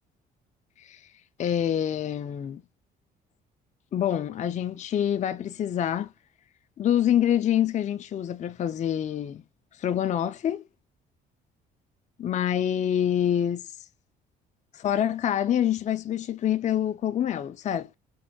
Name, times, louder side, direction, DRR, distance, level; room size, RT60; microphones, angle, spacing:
voice 1, 0.8-1.1 1.4-2.6 3.9-6.1 6.8-9.4 9.7-10.6 12.2-13.7 14.7-17.9, left 10 dB, 35° left, 0.4 m, -26 dB
5.1 x 2.9 x 2.2 m
supercardioid pair, 80°, 20 cm